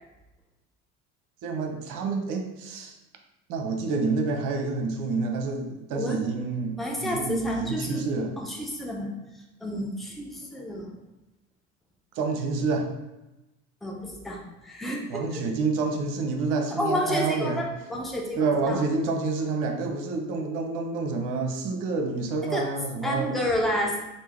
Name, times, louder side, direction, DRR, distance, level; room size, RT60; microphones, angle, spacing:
voice 1, 1.4-3.0 3.5-8.3 12.2-12.9 15.1-17.6 18.4-23.3, right 4 dB, 50° right, 3 dB, 0.7 m, -28 dB
voice 2, 6.8-8.0 8.4-9.1 9.6-10.9 13.8-15.4 16.7-18.8 22.5-22.7 23.0-24.0, left 1 dB, ahead, -1 dB, 0.3 m, -30 dB
3.6 x 2.6 x 2.9 m, 0.98 s
figure-of-eight pair, 70°, 42 cm